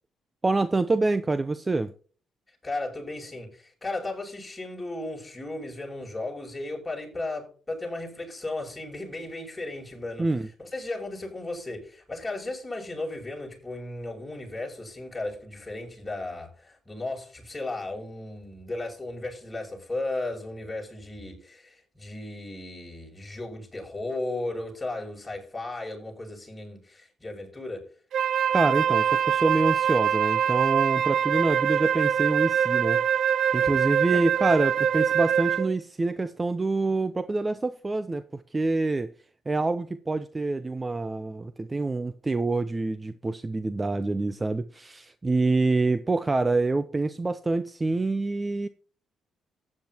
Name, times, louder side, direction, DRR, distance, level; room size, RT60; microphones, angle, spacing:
voice 1, 0.4-1.9 10.2-10.5 28.5-33.0 33.5-39.1 39.5-48.7, right 3 dB, 20° right, 0.6 m, -26 dB
voice 2, 2.6-10.3 10.6-27.9 33.6-33.7 34.1-34.2, left 2 dB, 15° left, 6.6 m, -35 dB
Wind instrument woodwind instrument, 28.1-35.7, right 8 dB, 65° right, 0.6 m, -24 dB
14.5 x 9.7 x 3.0 m
cardioid pair, 90°, 0 cm